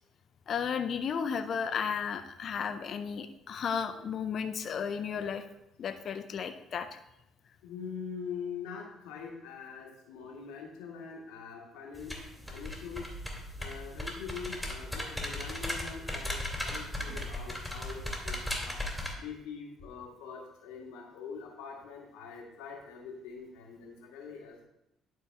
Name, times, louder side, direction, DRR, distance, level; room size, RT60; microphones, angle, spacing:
voice 1, 0.5-5.4 5.8-7.0, left 7 dB, 55° left, 8 dB, 0.5 m, -34 dB
voice 2, 7.6-12.2 12.5-13.1 13.6-18.8 19.2-24.7, left 6 dB, 75° left, -1 dB, 1.7 m, -43 dB
sound 1, 11.9-19.1, left 1 dB, ahead, 2.3 m, -37 dB
11.5 x 4.6 x 3.3 m, 0.85 s
hypercardioid pair, 55°, 0 cm